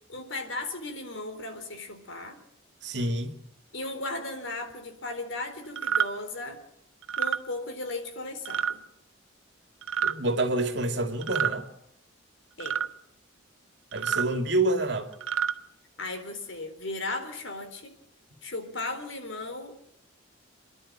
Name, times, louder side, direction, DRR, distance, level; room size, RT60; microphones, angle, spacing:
voice 1, 0.1-2.4 3.7-6.6 7.2-8.8 12.6-12.8 16.0-17.9 18.4-19.9, left 2 dB, 70° left, 3.9 m, -36 dB
voice 2, 2.8-3.4 10.0-11.7 13.9-15.1, right 2 dB, 55° right, 2.4 m, -27 dB
sound 1, 5.8-6.1 7.0-7.4 8.5-8.7 9.8-10.2 11.2-11.6 12.6-12.9 13.9-14.3 15.1-15.5, right 8 dB, 80° right, 1.0 m, -28 dB
28.0 x 11.5 x 8.8 m
head